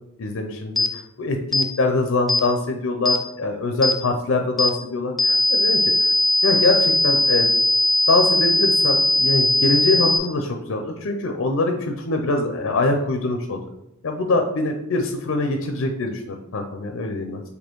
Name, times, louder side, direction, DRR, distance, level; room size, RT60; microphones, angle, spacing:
voice 1, 0.2-5.9 6.4-7.5 8.1-13.6 14.0-17.4, left 2 dB, 60° left, 4 dB, 0.5 m, -23 dB
sound 1, 0.8-0.9 1.5-1.7 2.3-2.5 3.1-3.2 3.8-4.0 4.6-4.7 5.2-10.2, left 1 dB, ahead, 0.3 m, -19 dB
4.3 x 2.8 x 4.5 m, 0.85 s
head